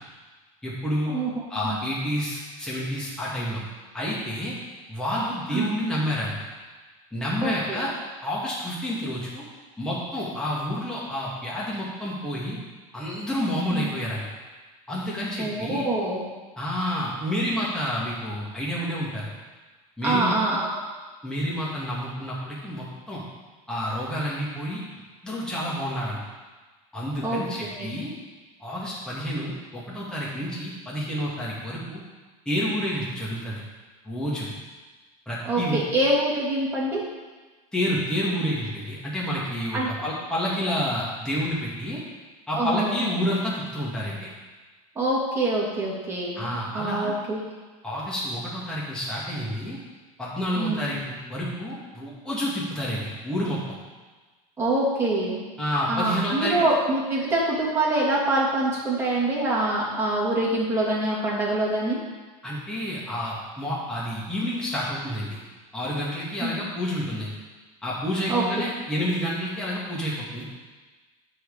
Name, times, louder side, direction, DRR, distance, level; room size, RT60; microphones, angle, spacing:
voice 1, 0.6-1.1 1.5-3.6 3.9-4.5 4.9-6.3 7.1-7.9 8.2-9.4 9.8-12.6 12.9-14.2 14.9-15.9 16.6-19.3 20.0-20.4 21.2-23.2 23.7-24.8 25.2-26.2 26.9-28.1 28.6-32.0 32.5-33.6 34.0-34.5 35.3-35.8 37.7-42.0 42.5-44.3 46.4-47.1 47.8-49.8 50.2-53.8 55.6-56.7 62.4-65.4 65.7-67.3 67.8-70.4, equal, 5° left, -7 dB, 2.2 m, -29 dB
voice 2, 7.4-7.8 13.7-13.9 15.4-16.2 20.0-20.8 27.2-27.9 35.4-37.0 39.7-39.9 42.5-43.1 44.9-47.4 50.5-50.9 54.6-55.4 55.9-62.0 66.4-66.5 68.3-68.4, right 2 dB, 15° right, -7 dB, 2.8 m, -25 dB
9.1 x 4.4 x 6.8 m, 1.3 s
supercardioid pair, 135°, 18 cm